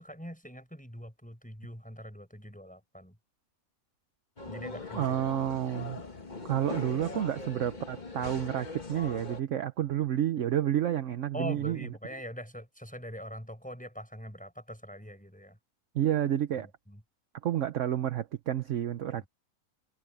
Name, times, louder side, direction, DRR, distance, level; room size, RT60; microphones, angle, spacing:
voice 1, 0.0-3.1 4.5-5.1 11.3-15.6 16.6-17.0 19.1-19.2, equal, 5° left, 6.3 m, -43 dB
sound 1, 4.4-9.4, left 3 dB, 30° left, 1.6 m, -41 dB
voice 2, 5.0-6.0 6.4-11.9 15.9-16.7 17.4-19.3, right 11 dB, 60° right, 1.0 m, -30 dB
omnidirectional pair, 1.6 m